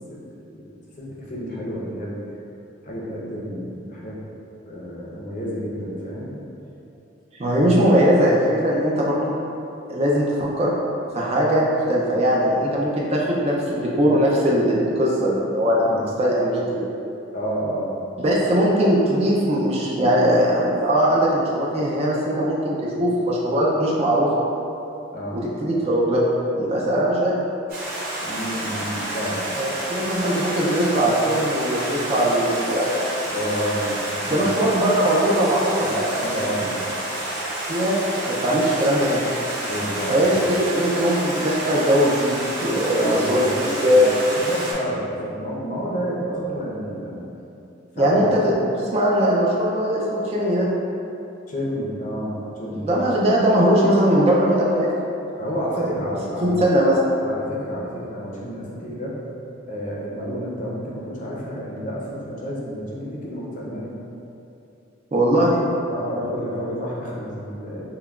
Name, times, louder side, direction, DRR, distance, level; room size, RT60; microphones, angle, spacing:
voice 1, 0.1-0.6 1.0-2.2 2.8-4.2 4.7-6.3 15.8-16.0 17.3-17.9 25.1-25.4 28.2-29.4 33.3-34.5 35.0-35.1 35.8-35.9 36.2-36.9 39.7-40.5 42.9-43.6 43.9-47.3 47.9-48.4 51.5-53.0 55.4-56.6 57.2-59.2 59.6-63.9 65.9-67.9, equal, 40° left, -5 dB, 0.6 m, -30 dB
voice 2, 7.3-9.4 9.9-10.8 11.1-16.9 18.2-24.3 25.3-26.2 26.5-27.4 29.5-33.0 34.3-36.5 37.7-38.0 38.3-39.2 40.1-44.1 48.0-48.5 48.8-50.7 52.8-54.9 55.8-55.9 56.4-57.0 65.1-65.6, equal, 30° right, -4 dB, 0.4 m, -20 dB
Stream, 27.7-44.7, right 1 dB, 50° right, 1.1 m, -29 dB
5.6 x 2.2 x 2.3 m, 2.8 s
head